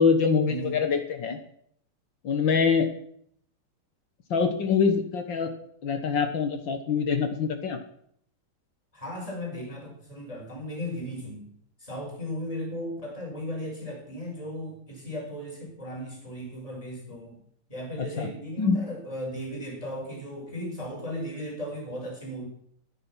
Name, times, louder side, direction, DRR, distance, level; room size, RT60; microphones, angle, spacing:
voice 1, 0.0-1.4 2.2-2.9 4.3-5.5 5.8-7.8 18.0-18.3 18.6-18.8, left 5 dB, 65° left, 7 dB, 2.1 m, -24 dB
voice 2, 8.9-11.5 11.8-17.4 17.7-22.5, equal, 15° left, -1 dB, 5.4 m, -36 dB
16.0 x 10.0 x 6.2 m, 0.68 s
omnidirectional pair, 2.3 m